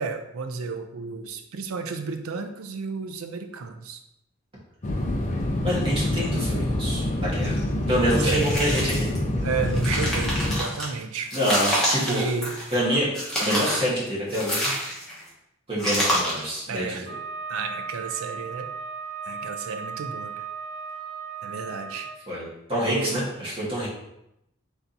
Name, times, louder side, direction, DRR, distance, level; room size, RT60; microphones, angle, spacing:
voice 1, 0.0-4.0 8.1-8.5 9.4-11.3 12.1-12.5 16.7-17.1 17.5-18.7 19.3-20.3 21.4-22.1 22.8-23.3, right 4 dB, 80° right, 7 dB, 0.5 m, -32 dB
sound 1, 4.8-10.6, left 1 dB, 35° left, 0.5 m, -26 dB
voice 2, 5.6-7.6 7.9-9.1 11.3-12.3 12.7-13.1 13.4-14.7 15.7-17.1 22.3-23.9, equal, 25° right, -7 dB, 1.4 m, -26 dB
sound 2, 8.1-9.2 9.6-10.9 11.3-12.8 13.1-13.9 14.3-15.2 15.8-16.5, equal, 5° left, 1.0 m, -27 dB
Wind instrument woodwind instrument, 17.0-22.2, right 5 dB, 50° right, 1.4 m, -36 dB
3.4 x 2.8 x 3.9 m, 0.82 s
head